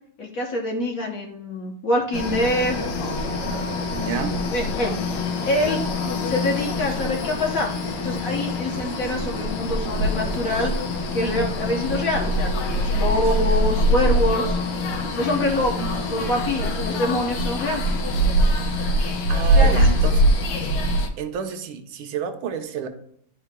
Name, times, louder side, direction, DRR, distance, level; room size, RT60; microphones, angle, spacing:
voice 1, 0.2-2.8 4.5-4.9 5.5-5.8 6.2-7.7 8.0-10.8 11.1-14.6 15.1-15.8 16.1-17.8 19.5-19.8, left 1 dB, 55° left, 1 dB, 1.0 m, -25 dB
sound 1, 2.1-21.1, equal, 90° left, 1.7 m, -23 dB
sound 2, 2.5-21.1, right 5 dB, 55° right, 1.2 m, -41 dB
voice 2, 3.9-4.4 15.8-15.9 19.0-20.2 21.2-22.9, right 7 dB, 75° right, 5 dB, 1.6 m, -30 dB
11.0 x 4.6 x 2.2 m, 0.65 s
omnidirectional pair, 2.4 m